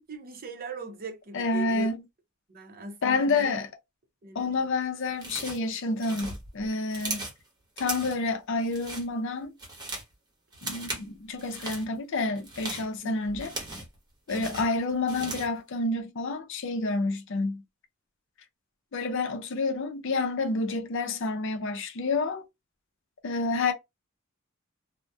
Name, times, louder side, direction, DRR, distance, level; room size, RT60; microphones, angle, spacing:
voice 1, 0.1-1.9 2.5-3.5 4.2-4.5 13.0-13.3 14.3-14.7, right 3 dB, 45° right, 0.6 m, -40 dB
voice 2, 1.3-2.0 3.0-3.7 4.3-7.3 7.8-9.5 10.6-13.5 14.3-17.6 18.9-22.4 23.2-23.7, left 3 dB, 65° left, 0.5 m, -29 dB
sound 1, 5.2-5.7 6.0-7.4 7.8-8.3 8.6-9.1 9.4-10.1 10.5-11.1 11.4-11.9 12.4-14.0 14.3-15.6, right 2 dB, 20° right, 0.9 m, -38 dB
2.7 x 2.1 x 2.2 m
head